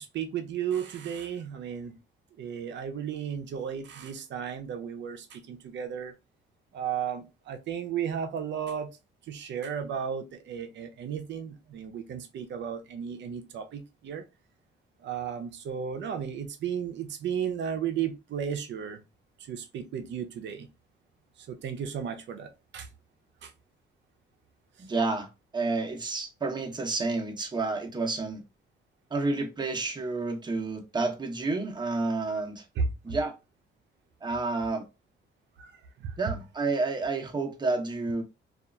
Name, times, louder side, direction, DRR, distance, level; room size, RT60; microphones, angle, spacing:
voice 1, 0.0-2.0 2.4-6.1 6.7-9.0 9.3-14.2 15.0-19.0 19.4-20.7 21.4-22.9 23.4-23.5 32.8-32.9 35.6-35.7 36.0-36.3, right 7 dB, 65° right, 0.6 m, -34 dB
voice 2, 24.8-25.3 25.5-28.4 29.1-32.6 33.0-33.4 34.2-34.8 36.2-38.2, right 3 dB, 20° right, 0.8 m, -30 dB
2.8 x 2.4 x 2.2 m
cardioid pair, 90°, 20 cm